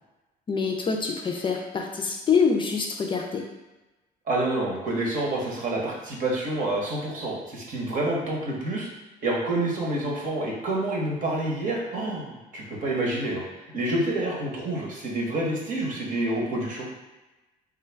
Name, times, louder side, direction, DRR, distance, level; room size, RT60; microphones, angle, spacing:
voice 1, 0.5-3.5, left 5 dB, 30° left, 2 dB, 0.4 m, -25 dB
voice 2, 4.3-8.9 9.2-16.9, right 1 dB, 50° right, -2 dB, 1.0 m, -28 dB
3.6 x 2.2 x 3.3 m, 1.1 s
cardioid pair, 110°, 17 cm